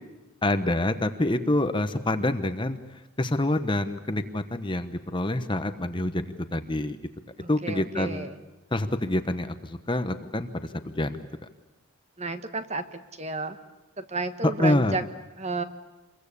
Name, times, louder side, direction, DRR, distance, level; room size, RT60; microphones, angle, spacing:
voice 1, 0.4-2.8 3.2-6.2 6.5-7.0 7.5-8.3 8.7-10.5 10.8-11.2 14.4-15.0, left 1 dB, 20° left, 9 dB, 1.0 m, -26 dB
voice 2, 7.4-8.4 12.2-12.8 13.2-13.6 14.0-15.0 15.4-15.6, right 3 dB, 30° right, 9 dB, 1.4 m, -31 dB
27.0 x 22.5 x 8.5 m, 1.1 s
head